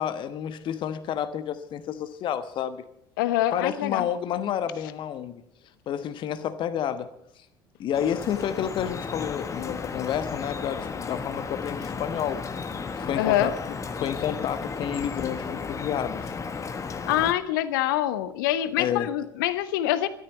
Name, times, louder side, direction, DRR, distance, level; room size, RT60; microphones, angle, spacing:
voice 1, 0.0-2.8 3.5-5.4 5.9-7.1 7.8-12.4 13.0-13.6 14.0-16.3 18.8-19.1, left 9 dB, 40° left, 12 dB, 1.1 m, -30 dB
voice 2, 3.2-4.1 13.2-13.5 17.1-20.1, left 13 dB, 65° left, 14 dB, 1.1 m, -25 dB
Drip, 7.9-17.3, left 5 dB, 25° left, 1.5 m, -34 dB
13.5 x 13.0 x 7.1 m, 0.72 s
figure-of-eight pair, 65°, 12 cm